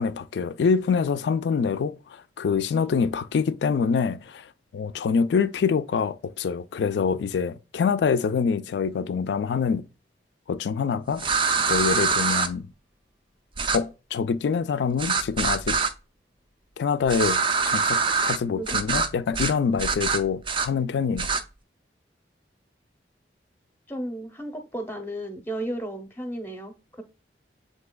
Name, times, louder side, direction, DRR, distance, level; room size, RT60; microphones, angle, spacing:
voice 1, 0.0-9.8 10.5-11.3 11.7-12.7 13.7-15.8 16.8-21.3, left 6 dB, 70° left, 0.3 m, -25 dB
sound 1, 11.2-12.5 13.6-13.8 15.0-15.9 17.1-18.4 18.7-19.1 19.3-19.5 19.8-20.7 21.2-21.4, right 5 dB, 30° right, 0.4 m, -24 dB
voice 2, 23.9-27.0, right 1 dB, 10° left, 0.6 m, -34 dB
7.6 x 2.7 x 2.2 m
head